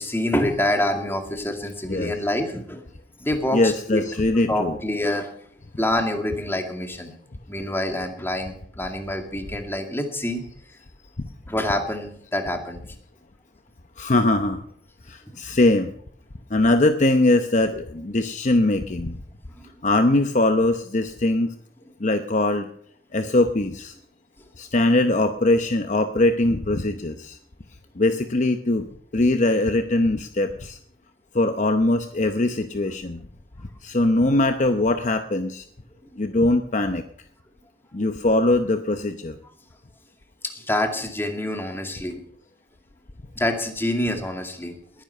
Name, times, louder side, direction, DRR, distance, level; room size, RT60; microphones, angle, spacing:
voice 1, 0.0-2.8 3.2-4.0 4.5-5.3 5.8-7.1 7.5-10.4 11.5-12.8 19.5-19.7 40.5-42.2 43.3-45.0, left 1 dB, 15° left, 4 dB, 2.2 m, -26 dB
voice 2, 1.8-2.2 3.5-4.8 14.0-14.6 15.1-15.9 16.5-19.2 19.8-21.5 22.0-22.7 23.1-24.0 24.6-27.4 28.0-28.9 29.1-30.8 31.3-33.2 33.8-35.6 36.2-37.0 37.9-39.4, left 2 dB, 40° left, 8 dB, 0.8 m, -21 dB
20.5 x 10.0 x 5.6 m, 0.63 s
head